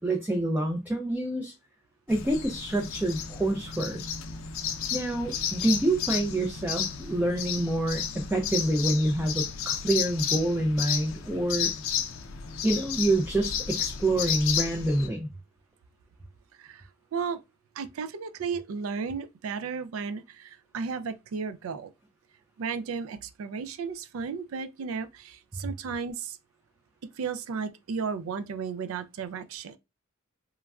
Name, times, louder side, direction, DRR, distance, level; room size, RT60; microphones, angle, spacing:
voice 1, 0.0-1.5 2.1-4.1 4.9-11.7 12.6-15.3, right 1 dB, 10° right, 0.3 m, -27 dB
sound 1, 2.1-15.1, left 8 dB, 70° left, 0.4 m, -32 dB
voice 2, 16.6-17.4 17.8-21.9 22.6-26.4 27.2-29.8, right 5 dB, 85° right, 0.4 m, -34 dB
3.1 x 2.3 x 2.3 m
head